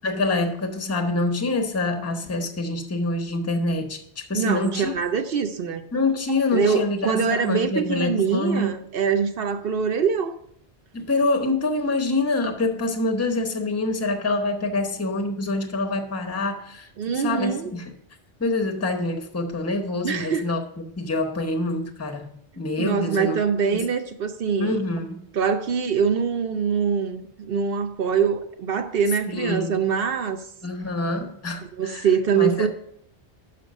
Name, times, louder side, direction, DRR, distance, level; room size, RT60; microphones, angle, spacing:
voice 1, 0.0-4.9 5.9-8.7 10.9-16.9 17.1-17.9 18.4-20.6 21.0-23.4 23.7-23.9 24.6-25.3 29.3-29.8 30.6-32.1 32.3-32.7, left 2 dB, 15° left, 0.7 m, -26 dB
voice 2, 4.3-5.8 6.5-10.4 17.0-17.7 20.0-20.5 22.8-24.8 25.3-30.4 31.6-32.7, right 6 dB, 60° right, 0.9 m, -24 dB
5.9 x 5.7 x 6.3 m
omnidirectional pair, 1.2 m